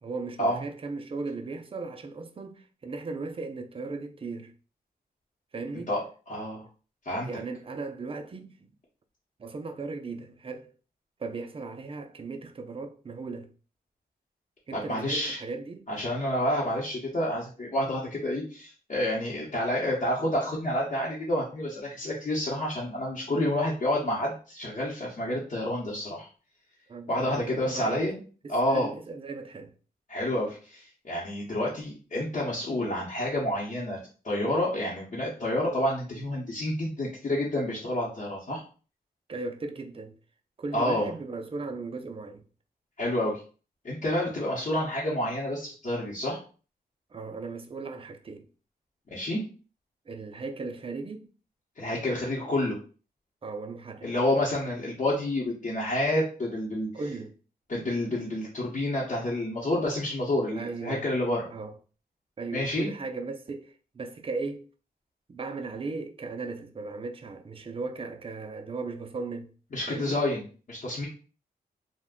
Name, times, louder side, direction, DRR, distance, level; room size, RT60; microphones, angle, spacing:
voice 1, 0.0-4.5 5.5-5.9 7.2-8.6 9.4-10.7 11.2-13.5 14.7-15.8 26.9-28.0 28.4-29.7 39.3-40.2 40.6-42.4 47.1-48.5 50.1-51.3 53.4-54.1 56.9-57.3 60.5-61.1 61.5-61.7 62.4-64.6 65.3-69.5 69.9-70.2, right 3 dB, 35° right, 0.4 m, -37 dB
voice 2, 6.3-6.7 7.0-7.3 14.7-15.4 15.9-26.3 27.1-28.2 28.5-28.9 30.1-34.0 34.2-38.6 40.7-41.1 43.0-43.4 43.8-46.4 49.1-49.4 51.8-52.8 54.0-56.9 57.7-61.4 62.5-62.9 69.7-70.4 70.7-71.1, left 1 dB, 45° left, 0.8 m, -29 dB
2.4 x 2.1 x 3.5 m
wide cardioid pair, 105°, 17 cm